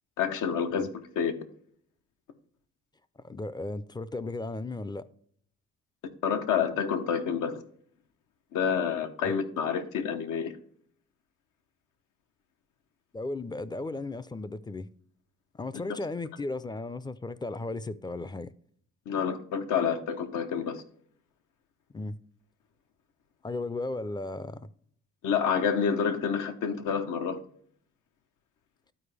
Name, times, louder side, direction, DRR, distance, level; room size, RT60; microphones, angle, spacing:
voice 1, 0.2-1.4 6.2-7.6 8.5-10.5 15.9-16.0 19.1-20.8 25.2-27.4, left 7 dB, 85° left, 1.0 m, -28 dB
voice 2, 3.2-5.1 9.2-9.4 13.1-14.9 15.5-18.5 21.9-22.2 23.4-24.7, left 2 dB, 15° left, 0.4 m, -35 dB
12.0 x 4.6 x 3.3 m
cardioid pair, 90°, 30 cm